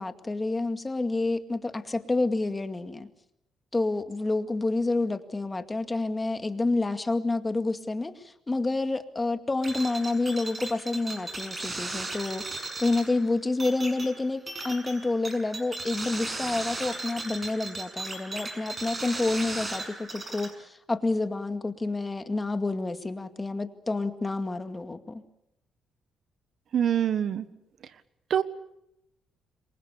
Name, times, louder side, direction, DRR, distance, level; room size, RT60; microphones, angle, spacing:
voice 1, 0.0-3.1 3.7-12.5 12.8-25.2, left 2 dB, 20° left, 8 dB, 2.1 m, -29 dB
sound 1, 9.6-20.5, right 2 dB, 30° right, 6.4 m, -37 dB
voice 2, 26.7-27.4 28.3-28.4, right 9 dB, 60° right, 14 dB, 1.4 m, -24 dB
27.5 x 23.5 x 7.2 m, 0.79 s
cardioid pair, 90°, 0 cm